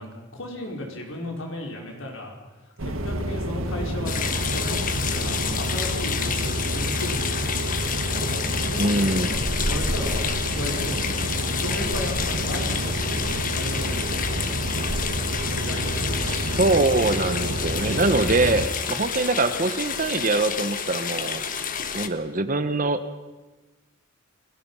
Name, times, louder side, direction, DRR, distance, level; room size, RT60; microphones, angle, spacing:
voice 1, 0.0-2.4 2.8-4.8 5.1-11.3 11.6-14.9 15.5-16.7, left 1 dB, 65° left, 1 dB, 4.7 m, -36 dB
sound 1, 2.8-18.7, right 1 dB, 75° right, 1.9 m, -28 dB
sound 2, 4.1-22.1, left 7 dB, 40° left, 1.3 m, -29 dB
voice 2, 8.7-9.3 16.2-21.4 21.9-23.2, right 2 dB, 40° right, 11 dB, 1.0 m, -23 dB
29.5 x 17.0 x 5.6 m, 1.2 s
head